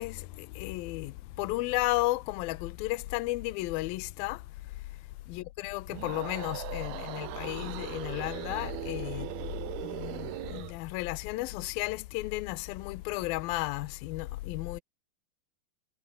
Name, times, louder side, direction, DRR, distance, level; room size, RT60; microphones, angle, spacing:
voice 1, 0.0-4.4 5.3-9.3 9.8-14.8, left 19 dB, 75° left, 2.5 m, -33 dB
sound 1, 5.9-10.8, right 19 dB, 80° right, 2.4 m, -39 dB
omnidirectional pair, 4.8 m